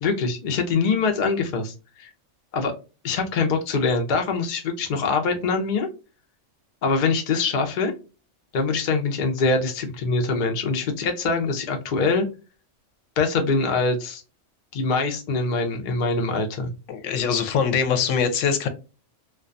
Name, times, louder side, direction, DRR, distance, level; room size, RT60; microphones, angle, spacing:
voice 1, 0.0-2.1 2.5-2.7 3.0-5.9 6.8-7.9 8.5-12.3 13.2-14.2 14.7-16.7, left 4 dB, 50° left, 0.6 m, -24 dB
voice 2, 16.9-18.7, left 6 dB, 80° left, 0.9 m, -23 dB
2.3 x 2.2 x 2.5 m
omnidirectional pair, 1.3 m